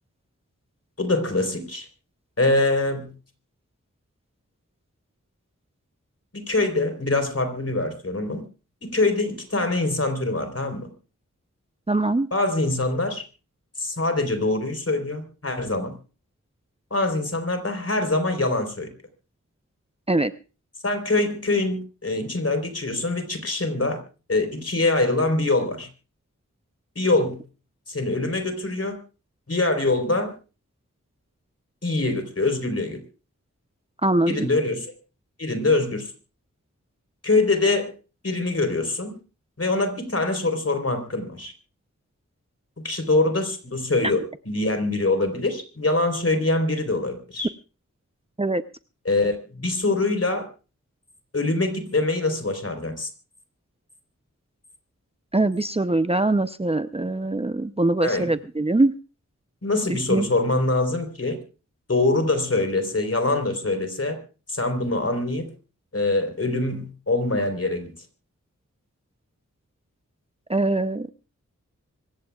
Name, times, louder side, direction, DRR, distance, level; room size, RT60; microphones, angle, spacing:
voice 1, 1.0-1.9 2.4-3.1 6.3-8.4 8.8-10.9 12.3-13.2 13.8-15.9 16.9-18.9 20.8-24.0 24.3-25.9 27.0-27.4 27.9-29.0 29.5-30.3 31.8-33.0 34.3-34.9 35.4-36.1 37.2-37.9 38.2-39.2 39.6-41.5 42.8-47.5 49.1-50.5 51.3-53.1 58.0-58.3 59.6-61.4 61.9-64.2 64.5-65.5 65.9-67.9, left 2 dB, 50° left, 6 dB, 4.0 m, -24 dB
voice 2, 11.9-12.3 20.1-20.3 34.0-34.5 48.4-48.6 55.3-58.9 59.9-60.3 70.5-71.1, right 2 dB, 20° right, 10 dB, 0.7 m, -22 dB
25.5 x 15.5 x 2.4 m, 0.34 s
wide cardioid pair, 65°, 30 cm